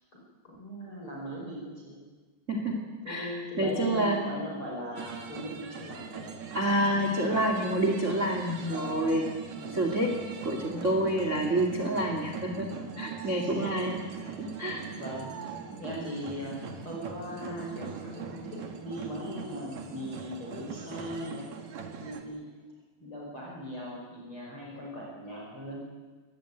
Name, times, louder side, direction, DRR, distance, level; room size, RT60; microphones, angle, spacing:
voice 1, 0.4-2.0 3.0-6.4 7.2-7.4 8.7-9.2 9.5-9.8 13.2-14.4 15.0-15.3 15.8-21.4 21.9-22.4 23.0-25.9, equal, 30° left, -3 dB, 5.7 m, -39 dB
voice 2, 2.5-2.8 3.1-4.3 6.5-9.2 9.7-10.1 10.4-14.0 14.4-14.8, right 1 dB, 25° right, 4 dB, 1.9 m, -28 dB
sound 1, 5.0-22.2, right 6 dB, 50° right, 2.6 m, -41 dB
24.5 x 19.0 x 9.2 m, 1.4 s
omnidirectional pair, 5.2 m